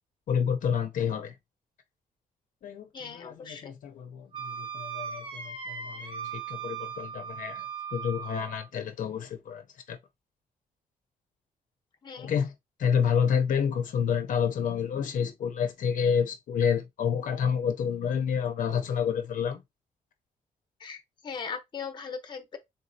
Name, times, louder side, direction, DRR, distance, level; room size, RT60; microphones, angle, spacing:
voice 1, 0.3-1.3 2.6-7.6 7.9-9.6 9.9-10.0 12.2-12.5 12.8-19.6, left 7 dB, 60° left, 0.6 m, -29 dB
voice 2, 2.9-3.7 12.0-12.3 20.8-22.6, left 6 dB, 30° left, 0.8 m, -39 dB
Wind instrument woodwind instrument, 4.3-8.7, right 7 dB, 35° right, 0.8 m, -38 dB
3.9 x 3.8 x 2.7 m
wide cardioid pair, 160°, 15 cm